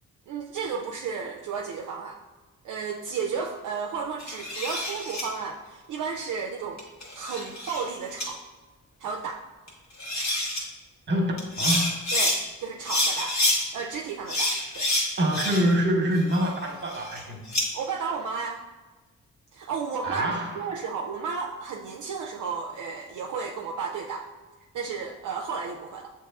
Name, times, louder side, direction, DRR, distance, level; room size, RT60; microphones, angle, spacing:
voice 1, 0.3-2.2 2.6-6.8 7.1-8.4 9.0-9.4 12.1-13.4 13.7-14.9 17.7-18.6 19.5-24.3 24.7-26.1, right 5 dB, 65° right, 2 dB, 0.4 m, -33 dB
sound 1, 4.2-5.2 6.8-7.8 8.2-8.3 9.7-9.8 10.0-10.6 11.4-12.4 12.8-13.6 14.3-15.8 16.1-17.6, left 1 dB, 55° left, 1.3 m, -27 dB
voice 2, 11.1-11.9 15.2-17.4 20.0-20.7, right 1 dB, 35° right, 1 dB, 1.0 m, -25 dB
6.5 x 2.9 x 2.3 m, 1.2 s
cardioid pair, 55°, 34 cm